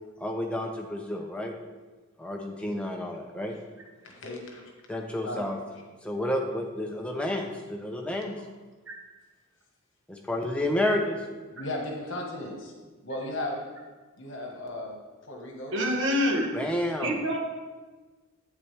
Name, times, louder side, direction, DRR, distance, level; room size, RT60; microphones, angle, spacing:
voice 1, 0.2-1.5 2.2-3.6 4.9-5.6 6.0-8.3 10.1-11.2 16.5-17.2, left 1 dB, 5° left, 1 dB, 0.7 m, -30 dB
voice 2, 4.0-4.6 5.2-5.4 11.5-12.7 13.0-13.6 14.2-15.0 15.3-15.7, left 1 dB, 60° left, 1 dB, 1.5 m, -35 dB
voice 3, 15.7-16.5 17.0-17.4, equal, 60° right, 0 dB, 1.3 m, -26 dB
8.5 x 7.4 x 3.4 m, 1.3 s
head